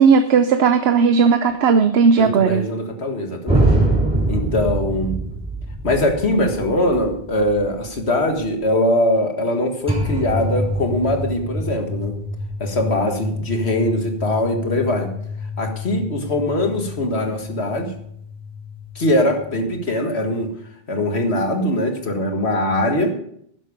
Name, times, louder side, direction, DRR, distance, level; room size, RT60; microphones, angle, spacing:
voice 1, 0.0-2.6, right 5 dB, 75° right, 9 dB, 1.0 m, -15 dB
voice 2, 2.2-3.7 4.3-5.2 5.8-12.1 12.6-15.1 15.6-17.9 19.0-20.5 20.9-23.1, left 1 dB, 85° left, 4 dB, 2.0 m, -21 dB
sound 1, 3.5-8.6 9.9-19.9, right 1 dB, 5° right, 3.9 m, -26 dB
12.0 x 10.5 x 5.2 m, 0.69 s
omnidirectional pair, 1.1 m